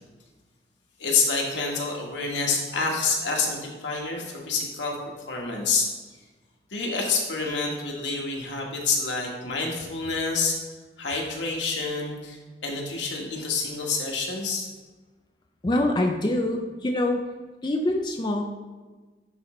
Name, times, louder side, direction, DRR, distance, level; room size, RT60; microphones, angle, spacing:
voice 1, 1.0-4.9 5.3-5.9 6.7-10.5 11.0-14.7, left 4 dB, 85° left, 0 dB, 1.3 m, -27 dB
voice 2, 15.6-17.2 17.6-18.4, left 1 dB, 25° left, 2 dB, 0.4 m, -24 dB
10.0 x 3.8 x 3.1 m, 1.3 s
head